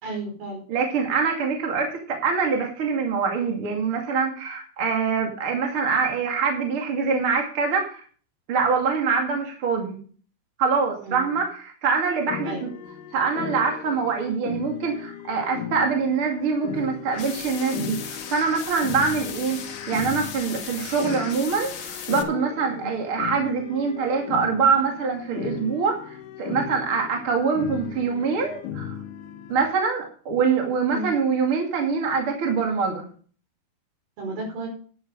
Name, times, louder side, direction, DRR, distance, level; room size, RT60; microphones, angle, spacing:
voice 1, 0.0-0.7 11.0-11.3 12.4-12.7 22.8-22.9 30.9-31.1 34.2-34.7, right 2 dB, 70° right, 1 dB, 6.9 m, -33 dB
voice 2, 0.7-8.0 8.5-10.0 10.6-12.7 13.1-19.6 19.9-29.0 29.5-33.0, right 5 dB, 40° right, 2 dB, 2.5 m, -24 dB
sound 1, 12.3-29.7, left 9 dB, 75° left, 1.9 m, -37 dB
sound 2, 17.1-22.2, left 7 dB, 60° left, 1.8 m, -37 dB
10.0 x 10.0 x 5.2 m, 0.43 s
omnidirectional pair, 4.7 m